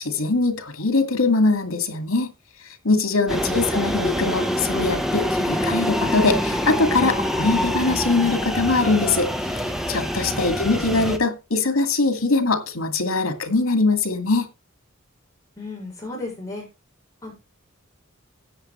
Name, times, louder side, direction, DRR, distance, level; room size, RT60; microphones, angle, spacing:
voice 1, 0.0-2.3 2.8-14.5, left 3 dB, 90° left, 2.3 m, -22 dB
voice 2, 3.2-3.6 10.2-10.6 15.6-16.7 17.2-17.3, left 2 dB, 15° left, 6.4 m, -35 dB
sound 1, 3.3-11.2, equal, ahead, 1.2 m, -25 dB
13.5 x 8.8 x 3.3 m
head